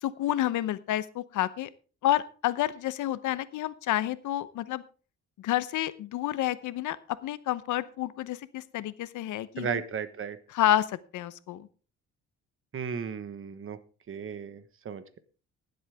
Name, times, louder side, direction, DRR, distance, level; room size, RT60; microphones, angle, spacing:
voice 1, 0.0-1.7 2.0-4.8 5.4-7.0 7.2-9.8 10.5-11.7, left 13 dB, 80° left, 15 dB, 0.9 m, -29 dB
voice 2, 9.6-10.4 12.7-13.8 14.1-15.2, right 6 dB, 45° right, 12 dB, 1.3 m, -35 dB
19.5 x 8.0 x 3.5 m, 0.36 s
cardioid pair, 90°, 30 cm